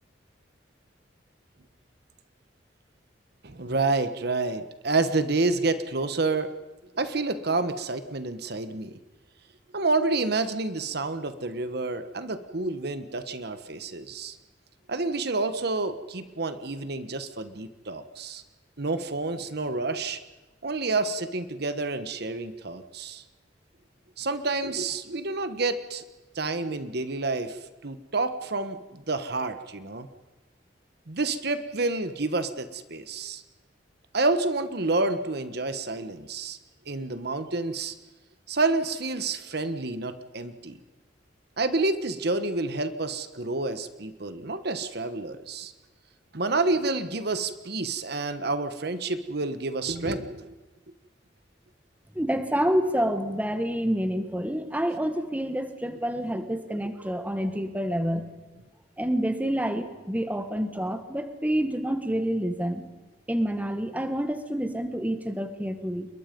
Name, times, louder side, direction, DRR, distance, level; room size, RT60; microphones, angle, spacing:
voice 1, 3.4-6.5 6.9-9.0 9.7-14.4 14.9-18.4 18.8-20.2 20.6-23.2 24.2-26.0 26.3-30.1 31.1-33.4 34.1-36.6 36.9-37.9 38.5-40.8 41.6-45.7 46.3-50.5, right 3 dB, 60° right, 10 dB, 1.3 m, -29 dB
voice 2, 52.1-58.3 59.0-62.9 63.3-66.1, equal, 10° right, 8 dB, 1.6 m, -28 dB
27.5 x 22.5 x 5.3 m, 1.2 s
head